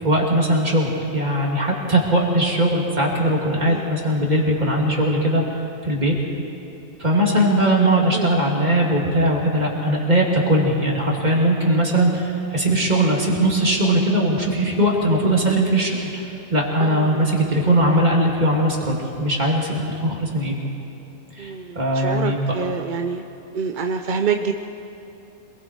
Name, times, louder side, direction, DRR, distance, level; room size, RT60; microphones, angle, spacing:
voice 1, 0.0-5.4 5.8-6.1 7.0-16.2 16.5-20.6 21.3-22.6, right 1 dB, 30° right, -2 dB, 3.0 m, -20 dB
voice 2, 16.8-17.3 21.4-23.3 23.5-24.5, right 6 dB, 45° right, 5 dB, 0.7 m, -26 dB
26.5 x 21.5 x 4.7 m, 3.0 s
omnidirectional pair, 1.5 m